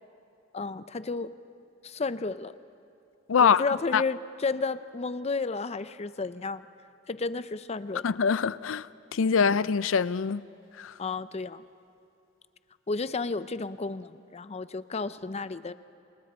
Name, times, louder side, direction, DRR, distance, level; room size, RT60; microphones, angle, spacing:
voice 1, 0.5-1.3 1.8-2.6 3.4-6.6 7.1-8.1 11.0-11.6 12.9-15.7, left 3 dB, 35° left, 0.6 m, -32 dB
voice 2, 3.3-3.6 3.9-4.0 8.0-8.9 9.1-10.4 10.8-10.9, left 6 dB, 85° left, 0.5 m, -24 dB
28.0 x 26.5 x 4.4 m
head